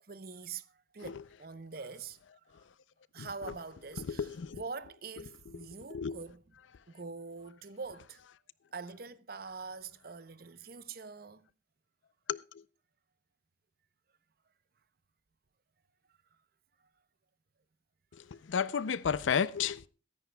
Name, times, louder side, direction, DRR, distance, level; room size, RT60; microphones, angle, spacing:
voice 1, 0.1-2.2 3.1-6.4 6.9-8.2 8.7-11.5, right 4 dB, 50° right, 0.7 m, -44 dB
voice 2, 4.0-4.6 5.5-6.2 12.3-12.6 18.1-19.9, left 7 dB, 90° left, 0.5 m, -33 dB
22.0 x 10.5 x 2.2 m
head